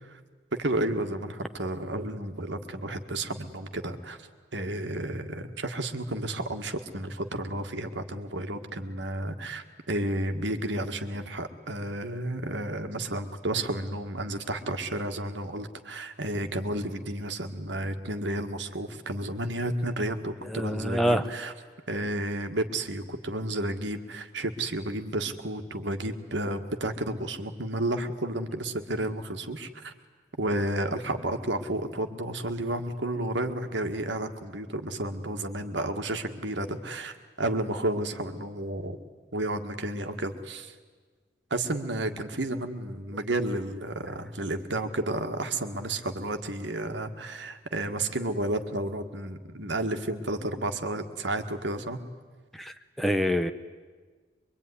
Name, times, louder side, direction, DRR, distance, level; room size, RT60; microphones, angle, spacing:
voice 1, 0.6-4.2 4.5-21.5 21.9-29.9 30.4-39.0 39.3-40.8 41.5-52.0, right 1 dB, 75° right, 7 dB, 1.8 m, -32 dB
voice 2, 20.5-21.3 52.5-53.5, equal, ahead, 9 dB, 0.7 m, -26 dB
25.0 x 23.0 x 9.9 m, 1.4 s
head